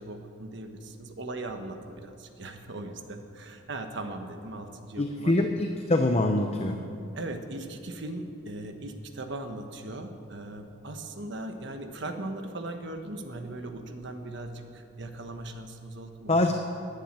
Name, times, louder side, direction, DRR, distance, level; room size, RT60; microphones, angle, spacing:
voice 1, 0.0-5.5 7.1-16.5, right 2 dB, 55° right, 5 dB, 1.2 m, -39 dB
voice 2, 5.0-6.8 16.3-16.5, left 2 dB, 30° left, 5 dB, 0.6 m, -24 dB
11.5 x 9.2 x 8.8 m, 2.6 s
head